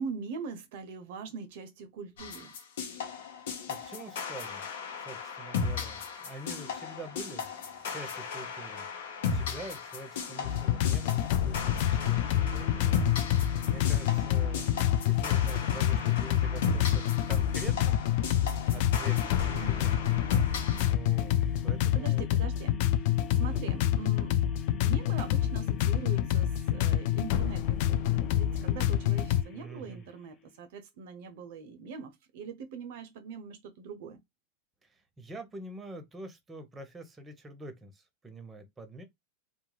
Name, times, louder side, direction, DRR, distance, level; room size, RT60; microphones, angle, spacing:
voice 1, 0.0-2.6 19.5-20.0 21.9-22.7 23.4-24.4 24.8-34.2, right 5 dB, 65° right, 0.5 m, -42 dB
sound 1, 2.2-20.9, left 5 dB, 75° left, 0.7 m, -36 dB
voice 2, 3.7-4.6 5.0-8.9 9.3-13.0 13.6-14.7 15.0-18.1 18.7-20.0 20.9-21.4 21.6-22.2 23.4-23.9 29.5-30.1 34.9-39.0, right 2 dB, 15° right, 0.7 m, -45 dB
sound 2, 10.4-29.4, left 11 dB, 60° left, 0.3 m, -27 dB
sound 3, 12.3-30.6, left 8 dB, 30° left, 0.6 m, -47 dB
2.3 x 2.1 x 3.1 m
hypercardioid pair, 110°, 0 cm